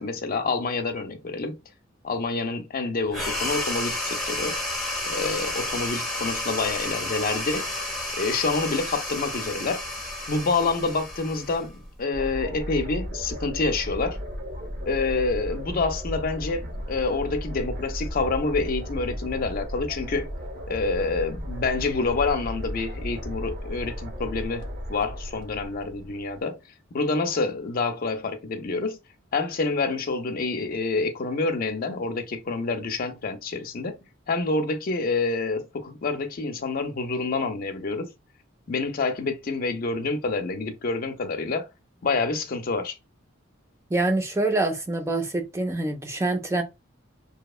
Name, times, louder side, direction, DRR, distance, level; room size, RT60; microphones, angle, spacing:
voice 1, 0.0-1.6 2.0-4.6 5.1-7.7 8.2-9.8 10.3-14.2 14.9-20.3 20.7-26.6 26.9-29.0 29.3-33.9 34.3-38.1 38.7-41.7 42.0-43.0, left 3 dB, 45° left, 0.5 m, -27 dB
sound 1, 3.1-12.0, left 1 dB, ahead, 0.9 m, -31 dB
sound 2, 12.1-26.4, equal, 55° right, 0.7 m, -35 dB
voice 2, 43.9-46.6, right 2 dB, 15° right, 0.4 m, -25 dB
2.7 x 2.0 x 2.3 m
head